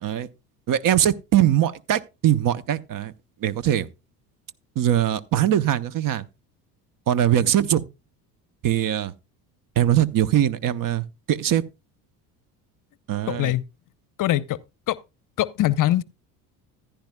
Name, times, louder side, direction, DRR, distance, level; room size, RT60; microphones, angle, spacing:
voice 1, 0.7-3.1 3.4-3.9 4.8-6.2 7.1-7.8 8.6-9.1 9.8-11.6 13.1-13.5, right 11 dB, 45° right, 0.8 m, -21 dB
voice 2, 13.3-13.6 14.2-14.6 14.9-15.0 15.4-16.0, left 14 dB, 40° left, 0.7 m, -22 dB
14.5 x 10.5 x 2.2 m
hypercardioid pair, 65°, 47 cm